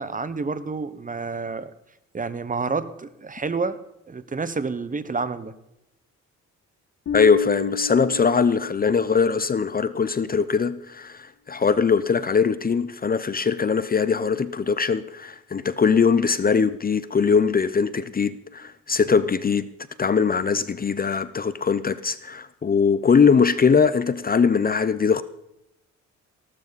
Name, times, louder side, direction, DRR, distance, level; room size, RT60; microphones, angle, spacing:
voice 1, 0.0-1.7 2.1-3.8 4.1-5.5, right 4 dB, 25° right, 1.1 m, -29 dB
Bass guitar, 7.1-9.5, left 4 dB, 60° left, 3.8 m, -32 dB
voice 2, 7.1-19.7 20.0-25.2, left 5 dB, 30° left, 0.7 m, -21 dB
18.5 x 12.5 x 4.1 m
cardioid pair, 90°, 30 cm